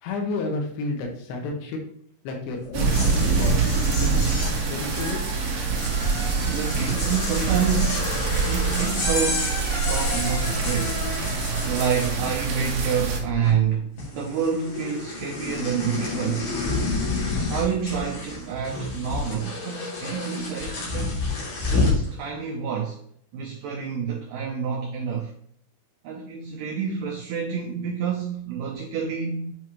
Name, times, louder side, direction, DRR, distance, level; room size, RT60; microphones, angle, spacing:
voice 1, 0.0-1.8 2.2-3.6 4.0-5.2, left 3 dB, 85° left, 3.4 m, -31 dB
sound 1, 2.7-12.7 13.0-13.7 14.0-22.0, left 3 dB, 55° left, 3.7 m, -30 dB
sound 2, 2.7-13.2, right 4 dB, 70° right, 1.6 m, -25 dB
voice 2, 6.4-8.1 8.4-11.0 11.6-16.6 17.5-21.3 21.7-23.0 23.3-25.3 26.0-29.5, right 7 dB, 85° right, 1.8 m, -28 dB
8.1 x 4.8 x 3.0 m
omnidirectional pair, 4.7 m